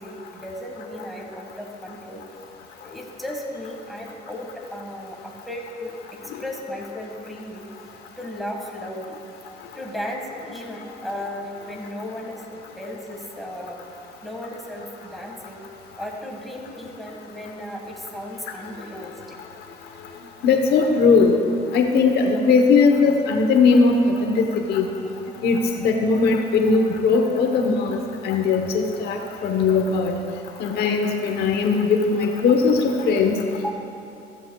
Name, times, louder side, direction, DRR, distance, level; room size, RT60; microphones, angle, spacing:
voice 1, 0.0-2.2 2.8-5.9 6.2-7.6 8.2-12.5 12.8-19.2 24.8-24.9 25.2-25.8 26.7-27.0 29.2-29.4 33.6-33.7, left 1 dB, ahead, -1 dB, 1.7 m, -35 dB
voice 2, 20.4-21.4 21.7-24.9 25.4-28.0 28.2-30.1 30.6-33.4, left 4 dB, 70° left, 3 dB, 1.0 m, -19 dB
14.0 x 14.0 x 2.3 m, 2.7 s
cardioid pair, 110°, 17 cm